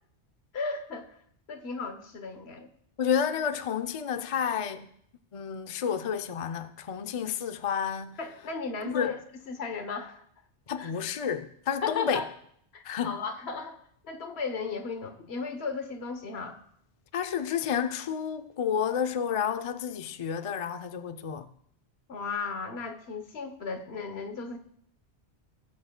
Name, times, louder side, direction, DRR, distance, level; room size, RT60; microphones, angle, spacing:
voice 1, 0.5-1.1 1.5-2.7 8.2-9.2 9.5-10.2 10.8-10.9 11.8-12.3 12.7-13.8 14.0-16.6 22.1-24.6, left 4 dB, 65° left, 1.2 m, -35 dB
voice 2, 3.0-4.9 5.3-8.2 8.8-9.1 10.7-12.2 12.8-13.2 17.1-21.5, left 7 dB, 45° left, 0.4 m, -30 dB
18.0 x 7.9 x 2.2 m
omnidirectional pair, 1.2 m